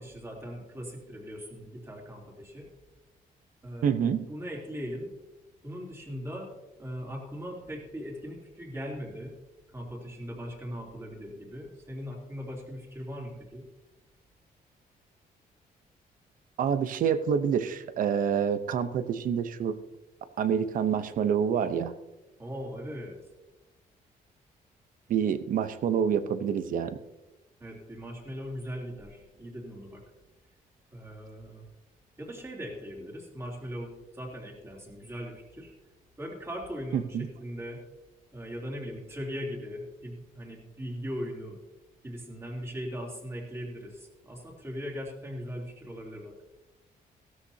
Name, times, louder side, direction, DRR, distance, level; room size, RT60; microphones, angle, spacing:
voice 1, 0.0-2.7 3.6-5.1 5.6-6.5 6.8-9.3 9.7-13.6 22.4-23.1 27.6-30.0 30.9-31.7 32.2-35.7 36.2-37.8 38.3-41.6 42.0-46.4, equal, 15° right, -2 dB, 3.2 m, -39 dB
voice 2, 3.8-4.3 16.6-19.8 20.4-21.9 25.1-27.0 36.9-37.3, right 7 dB, 65° right, 11 dB, 0.9 m, -27 dB
16.5 x 13.0 x 2.8 m, 1.0 s
cardioid pair, 160°, 15 cm